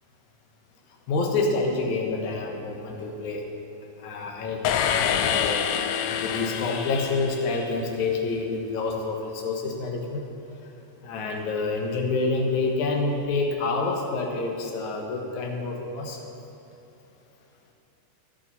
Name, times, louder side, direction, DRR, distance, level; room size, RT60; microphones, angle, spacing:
voice 1, 1.1-3.4 4.0-10.2 11.0-16.2, left 3 dB, 65° left, 1 dB, 2.4 m, -28 dB
sound 1, 4.6-7.8, left 9 dB, 80° left, 2.0 m, -27 dB
15.0 x 10.5 x 4.2 m, 3.0 s
omnidirectional pair, 4.1 m